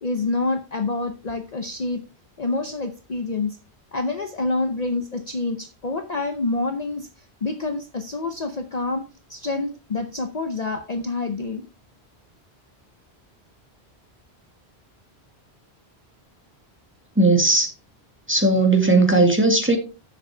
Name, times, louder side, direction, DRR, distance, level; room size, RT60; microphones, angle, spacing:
voice 1, 0.0-2.0 2.4-3.6 3.9-7.1 7.4-11.7, left 3 dB, 40° left, 0.9 m, -27 dB
voice 2, 17.2-17.7 18.3-19.8, right 2 dB, 10° right, 1.9 m, -17 dB
10.5 x 7.5 x 3.3 m
omnidirectional pair, 1.1 m